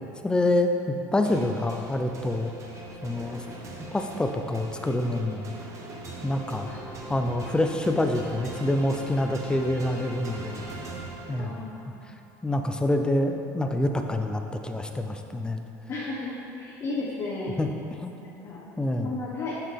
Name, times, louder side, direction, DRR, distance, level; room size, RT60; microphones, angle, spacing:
voice 1, 0.2-2.5 3.0-3.4 3.9-5.5 6.2-6.7 7.1-10.6 11.3-11.6 12.4-15.6 17.6-18.1 18.8-19.2, left 1 dB, 10° left, 5 dB, 0.5 m, -26 dB
sound 1, 1.2-11.8, right 2 dB, 40° right, 1.0 m, -40 dB
voice 2, 11.4-12.0 15.9-17.6 18.2-18.6 19.0-19.6, left 3 dB, 45° left, -6 dB, 1.1 m, -34 dB
7.3 x 5.7 x 3.5 m, 2.7 s
supercardioid pair, 100°, 8 cm